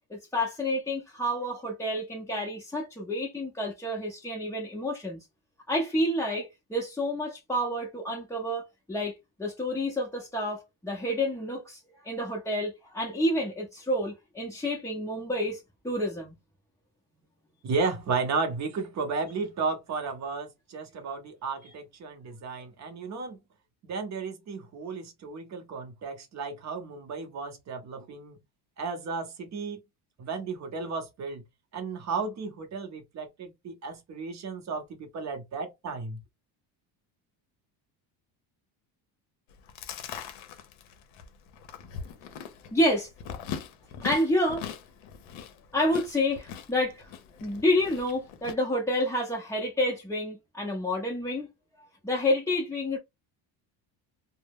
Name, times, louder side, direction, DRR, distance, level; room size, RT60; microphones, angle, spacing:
voice 1, 0.1-5.2 5.7-16.3 42.7-43.1 44.0-44.7 45.7-47.1 47.4-51.5 52.0-53.0, left 1 dB, 5° left, 0.4 m, -29 dB
voice 2, 17.6-23.4 23.8-28.4 28.8-29.8 30.2-31.4 31.7-36.2, right 4 dB, 35° right, 0.6 m, -33 dB
Chewing mastication, 39.5-48.5, left 8 dB, 70° left, 0.7 m, -41 dB
2.2 x 2.0 x 3.3 m
cardioid pair, 120°, 49 cm